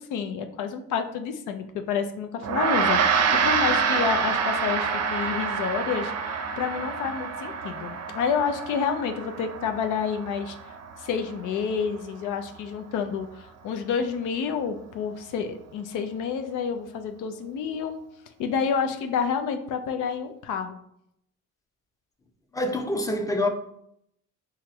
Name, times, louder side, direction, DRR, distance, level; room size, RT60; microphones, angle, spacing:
voice 1, 0.0-10.6 11.0-18.0 18.4-20.8, left 6 dB, 85° left, 0.5 m, -29 dB
Gong, 2.4-12.1, right 5 dB, 60° right, 0.5 m, -27 dB
voice 2, 22.5-23.5, left 1 dB, 10° left, 0.6 m, -26 dB
4.3 x 2.4 x 3.0 m
cardioid pair, 90°, 30 cm